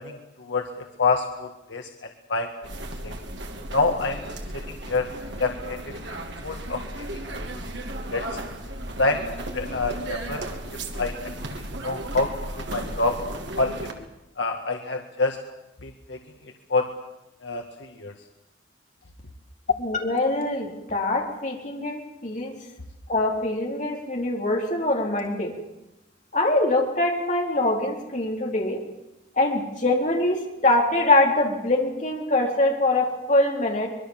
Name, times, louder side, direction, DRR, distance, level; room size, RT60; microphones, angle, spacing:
voice 1, 0.0-1.9 2.3-2.5 3.7-4.2 4.7-5.1 5.4-5.8 6.4-6.8 7.1-7.2 7.5-7.6 8.1-8.4 9.0-9.2 9.5-10.5 11.0-11.2 11.8-13.2 13.6-13.7 14.4-15.4 15.8-16.2 16.7-16.9 17.4-18.1, left 3 dB, 70° left, 3 dB, 1.8 m, -26 dB
sound 1, 2.6-13.9, right 1 dB, 65° right, 3.1 m, -35 dB
voice 2, 19.8-22.6 23.1-25.6 26.3-28.8 29.4-33.9, left 2 dB, 40° left, 0 dB, 4.3 m, -23 dB
24.5 x 22.5 x 7.5 m, 0.93 s
head